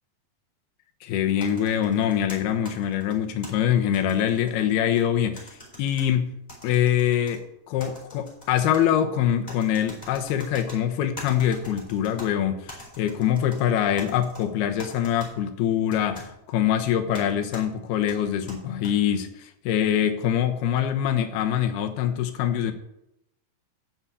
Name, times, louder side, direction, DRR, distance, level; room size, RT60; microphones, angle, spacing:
voice 1, 1.0-6.3 6.6-22.7, left 10 dB, 85° left, 6 dB, 3.1 m, -24 dB
sound 1, 1.4-3.5 3.9-5.1 5.4-6.1 6.5-7.4 7.8-8.8 9.5-10.8 11.2-12.3 12.7-13.6 14.0-14.4 14.8-15.3 15.9-16.3 17.1-17.2 17.5-17.6 18.1-18.9, left 1 dB, 10° left, 3.6 m, -43 dB
10.0 x 7.7 x 8.4 m, 0.84 s
omnidirectional pair, 4.4 m